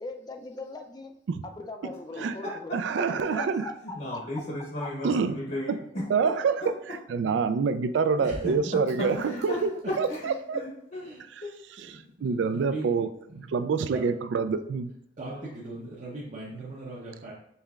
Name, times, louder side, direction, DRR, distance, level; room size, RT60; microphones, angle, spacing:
voice 1, 0.0-1.1 1.6-2.8 3.1-3.7 4.1-4.2, left 3 dB, 25° left, 5 dB, 0.3 m, -39 dB
voice 2, 2.7-3.7 5.0-5.4 5.7-5.8 6.1-9.7 10.0-10.6 11.3-11.4 11.8-13.1 13.4-14.9, right 5 dB, 80° right, 11 dB, 0.3 m, -27 dB
voice 3, 3.9-5.7 6.6-6.7 9.1-9.6 10.1-11.1 11.4-11.5 15.3-15.5, left 1 dB, 55° left, -3 dB, 0.9 m, -36 dB
voice 4, 8.2-8.7 10.9-11.3 11.8-12.9 13.3-13.5 13.8-14.0 15.2-17.3, right 2 dB, 45° right, -5 dB, 0.7 m, -39 dB
5.5 x 3.2 x 2.3 m, 0.74 s
head